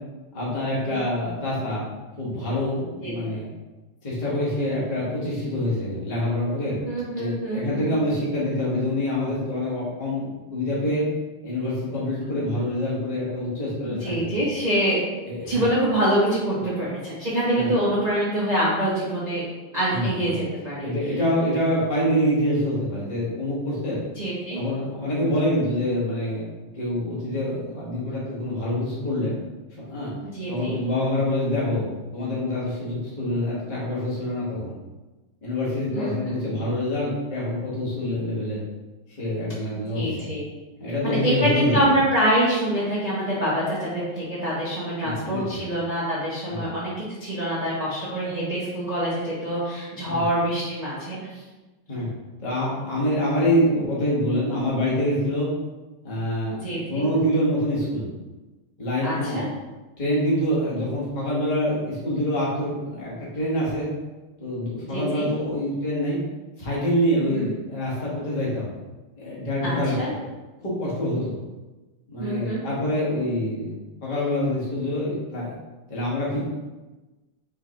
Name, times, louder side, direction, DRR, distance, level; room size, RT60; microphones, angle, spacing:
voice 1, 0.3-1.9 2.2-3.5 4.0-6.8 7.1-11.0 11.4-14.4 15.3-15.7 17.5-17.7 19.9-20.3 20.8-24.0 24.5-26.4 26.7-29.3 29.7-30.1 30.5-31.9 32.1-34.7 35.4-38.6 39.2-40.3 40.8-41.9 45.0-45.6 46.5-46.6 50.1-50.2 51.9-52.1 52.4-55.5 56.0-58.1 58.8-59.4 60.0-63.9 64.4-66.2 66.6-68.7 69.2-70.2 70.6-71.4 72.1-75.5 75.9-76.4, left 1 dB, 25° left, -7 dB, 1.2 m, -26 dB
voice 2, 6.8-7.9 14.0-15.0 15.4-19.4 19.7-20.9 24.2-24.6 30.3-30.7 35.9-36.3 39.9-40.5 41.0-46.9 47.2-51.4 56.6-57.0 59.0-59.5 64.9-65.3 67.3-67.5 69.6-70.1 72.2-72.6, right 1 dB, 55° right, -8 dB, 0.4 m, -25 dB
4.8 x 3.8 x 2.9 m, 1.2 s
omnidirectional pair, 2.4 m